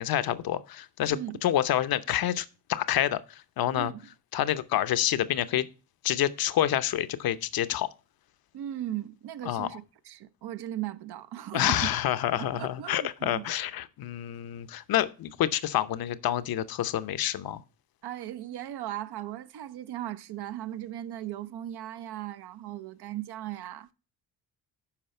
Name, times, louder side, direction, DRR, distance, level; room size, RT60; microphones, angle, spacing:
voice 1, 0.0-3.9 4.3-5.7 6.0-7.9 9.4-9.7 11.5-17.6, left 12 dB, 50° left, 0.8 m, -28 dB
voice 2, 1.1-1.4 3.7-4.0 8.5-11.9 12.3-13.5 18.0-23.9, right 12 dB, 60° right, 0.8 m, -37 dB
11.5 x 4.7 x 4.3 m
hypercardioid pair, 60°, 45 cm